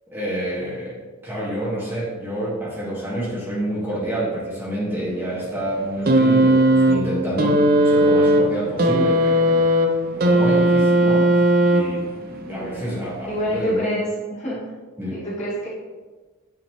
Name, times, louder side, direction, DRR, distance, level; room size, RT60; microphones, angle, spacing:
voice 1, 0.1-1.0 1.2-9.7 10.1-13.9 15.0-15.2, right 1 dB, 10° right, -8 dB, 1.5 m, -28 dB
sound 1, 6.1-12.2 13.3-13.4, right 1 dB, 45° right, 0.6 m, -17 dB
voice 2, 12.5-12.9 13.3-14.7 15.1-15.7, equal, 35° left, -8 dB, 1.9 m, -27 dB
8.6 x 4.1 x 3.0 m, 1.3 s
head